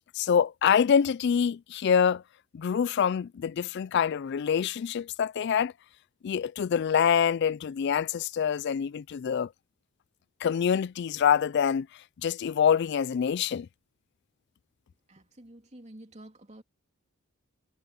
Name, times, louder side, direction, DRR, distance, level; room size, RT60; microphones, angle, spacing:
voice 1, 0.2-2.2 2.5-5.7 6.2-9.5 10.4-11.9 12.2-13.7, left 7 dB, 50° left, 0.3 m, -25 dB
voice 2, 15.1-16.6, right 1 dB, 30° right, 3.0 m, -49 dB
head